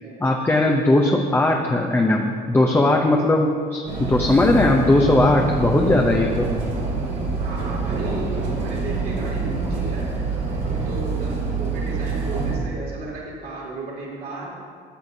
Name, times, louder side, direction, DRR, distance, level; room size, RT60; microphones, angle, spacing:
voice 1, 0.2-6.5, left 2 dB, 15° left, 1 dB, 0.6 m, -18 dB
sound 1, 3.9-12.6, right 3 dB, 85° right, 2.3 m, -26 dB
voice 2, 7.4-10.1 10.6-14.6, right 2 dB, 65° right, -4 dB, 2.4 m, -34 dB
12.5 x 7.3 x 2.7 m, 2.1 s
cardioid pair, 110°, 17 cm